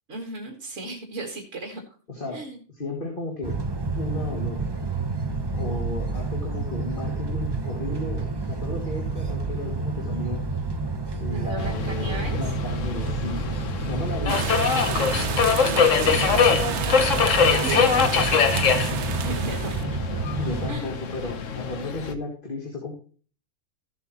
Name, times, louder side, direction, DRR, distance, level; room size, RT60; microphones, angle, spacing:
voice 1, 0.1-1.8 2.3-2.6 11.2-12.4 16.0-19.8 20.7-21.0, right 2 dB, 55° right, 2 dB, 2.0 m, -35 dB
voice 2, 2.1-2.4 2.7-3.6 4.0-4.6 5.5-10.4 11.2-13.5 13.9-14.4 14.7-16.1 20.4-22.9, left 2 dB, 35° left, 0 dB, 2.3 m, -34 dB
sound 1, 3.4-20.7, right 3 dB, 20° right, 0.8 m, -29 dB
Subway metro underground, 11.6-22.1, left 6 dB, 60° left, 1.3 m, -24 dB
sound 2, 14.3-19.8, right 8 dB, 80° right, 1.4 m, -31 dB
14.5 x 7.9 x 2.9 m, 0.39 s
omnidirectional pair, 1.6 m